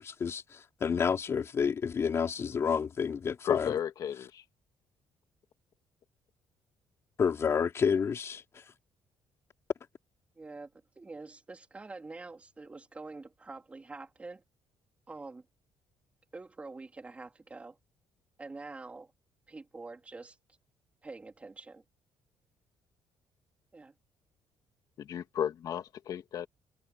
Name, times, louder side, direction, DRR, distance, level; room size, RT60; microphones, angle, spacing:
voice 1, 0.0-3.8 7.2-8.6, left 6 dB, 35° left, 4.1 m, -30 dB
voice 2, 3.4-4.4 25.0-26.5, left 9 dB, 55° left, 2.1 m, -33 dB
voice 3, 10.4-14.4 15.1-15.5 16.3-17.8 18.4-19.1 19.5-20.4 21.0-21.8 23.7-23.9, right 3 dB, 15° right, 3.7 m, -46 dB
cardioid pair, 165°, 8 cm